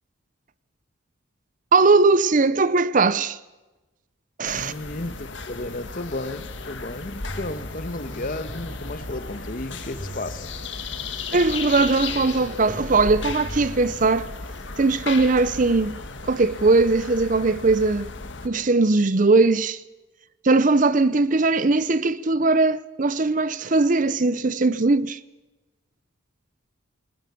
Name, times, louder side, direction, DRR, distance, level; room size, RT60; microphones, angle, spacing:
voice 1, 1.7-3.4 4.4-4.7 11.3-14.3 14.8-16.0 16.2-18.1 18.4-19.8 20.4-25.2, right 3 dB, 40° right, 0.7 m, -20 dB
sound 1, 4.4-18.5, left 4 dB, 65° left, 1.8 m, -35 dB
voice 2, 4.5-10.4, left 2 dB, 45° left, 1.3 m, -33 dB
sound 2, 7.3-14.5, right 1 dB, 20° left, 6.1 m, -41 dB
19.5 x 19.0 x 7.0 m
head